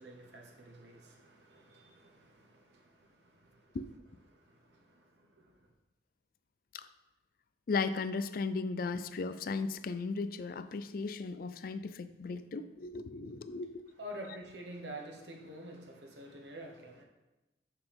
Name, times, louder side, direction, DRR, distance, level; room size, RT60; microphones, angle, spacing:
voice 1, 0.0-3.8 4.3-5.7 14.0-17.0, right 1 dB, 70° right, 2 dB, 1.1 m, -49 dB
voice 2, 7.7-13.9, left 4 dB, 50° left, 12 dB, 0.4 m, -36 dB
6.9 x 5.7 x 3.5 m, 1.0 s
head